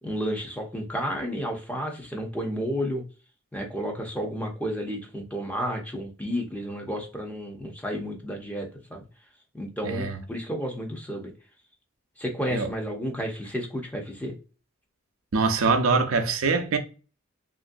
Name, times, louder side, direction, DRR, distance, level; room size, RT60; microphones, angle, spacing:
voice 1, 0.0-3.0 3.5-9.0 9.5-11.3 12.2-14.3, equal, 5° left, 0.6 m, -31 dB
voice 2, 9.8-10.2 12.5-12.7 15.3-16.8, right 4 dB, 85° right, 0.5 m, -23 dB
3.0 x 2.6 x 2.5 m
head